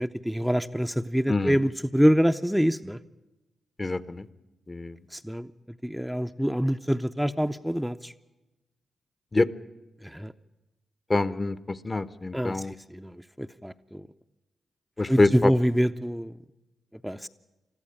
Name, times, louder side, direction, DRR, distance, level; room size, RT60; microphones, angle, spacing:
voice 1, 0.0-3.0 5.1-5.5 5.8-8.1 10.0-10.3 12.3-14.1 15.1-16.3 17.0-17.3, equal, ahead, 7 dB, 0.6 m, -26 dB
voice 2, 3.8-4.2 4.7-4.9 9.3-9.5 11.1-11.6 11.8-12.7 15.0-15.5, left 2 dB, 30° left, 15 dB, 0.9 m, -25 dB
22.0 x 14.0 x 8.7 m, 1.0 s
hypercardioid pair, 40°, 0 cm